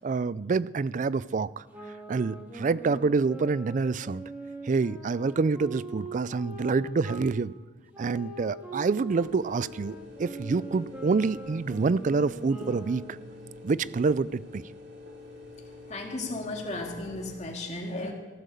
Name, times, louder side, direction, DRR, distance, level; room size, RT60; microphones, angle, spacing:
voice 1, 0.0-1.6 2.1-4.2 4.6-7.5 8.0-13.2 13.6-14.6, right 4 dB, 45° right, 0.4 m, -27 dB
sound 1, 1.7-7.3 7.9-13.4, right 2 dB, 10° right, 2.6 m, -43 dB
sound 2, 9.1-17.4, left 2 dB, 85° right, 2.3 m, -46 dB
voice 2, 15.9-18.1, left 2 dB, 40° left, 2.3 m, -35 dB
15.0 x 9.1 x 6.8 m
head